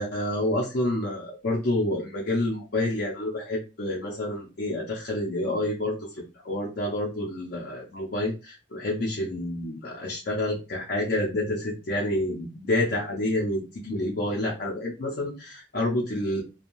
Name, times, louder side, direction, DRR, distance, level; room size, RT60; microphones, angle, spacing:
voice 1, 0.0-16.4, left 1 dB, 50° left, -2 dB, 0.6 m, -28 dB
2.6 x 2.3 x 2.9 m, 0.31 s
head